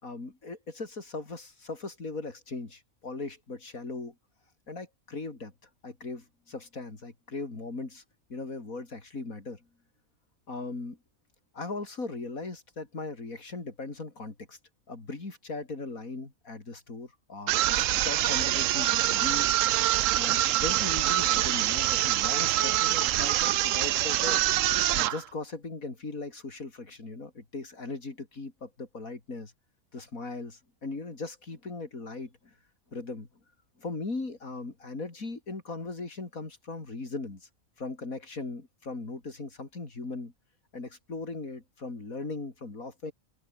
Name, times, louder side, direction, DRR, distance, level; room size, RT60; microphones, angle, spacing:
voice 1, 0.0-4.2 4.7-5.5 5.8-8.0 8.3-9.7 10.5-11.0 11.5-14.6 14.9-19.5 20.1-24.5 24.9-29.5 29.9-32.5 32.9-33.3 33.8-37.5 37.8-40.3 40.7-43.1, left 3 dB, 75° left, 4.4 m, -38 dB
sound 1, 17.5-25.2, right 14 dB, 70° right, 0.9 m, -25 dB
open air
omnidirectional pair, 1.5 m